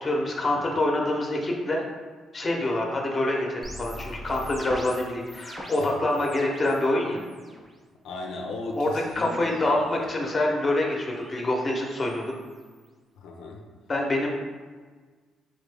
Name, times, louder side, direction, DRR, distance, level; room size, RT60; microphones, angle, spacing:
voice 1, 0.0-1.8 2.3-7.2 8.7-12.3 13.9-14.3, left 1 dB, 30° left, 0 dB, 0.8 m, -26 dB
sound 1, 3.6-6.9 7.2-7.7 8.7-12.9, equal, 15° right, 0.6 m, -44 dB
voice 2, 5.6-6.0 8.0-10.1 13.2-13.6, left 2 dB, 85° left, 1 dB, 0.4 m, -37 dB
4.1 x 2.6 x 3.3 m, 1.4 s
cardioid pair, 90°, 0 cm